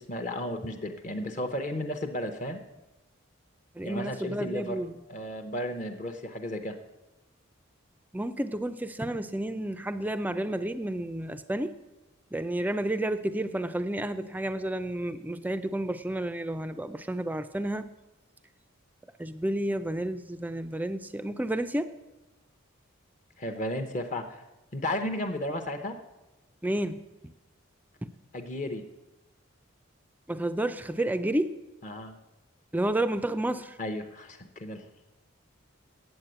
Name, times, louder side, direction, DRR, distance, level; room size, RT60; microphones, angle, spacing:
voice 1, 0.0-2.6 3.8-4.8 5.1-6.8 23.4-24.4 24.7-26.0 28.3-28.8 31.8-32.1 33.8-34.8, left 1 dB, 35° left, 7 dB, 0.7 m, -34 dB
voice 2, 3.8-5.0 8.1-11.8 12.3-17.9 19.2-21.9 26.6-27.3 30.3-31.6 32.7-33.8, right 1 dB, 10° right, 11 dB, 0.3 m, -31 dB
8.9 x 8.3 x 7.9 m, 1.0 s
head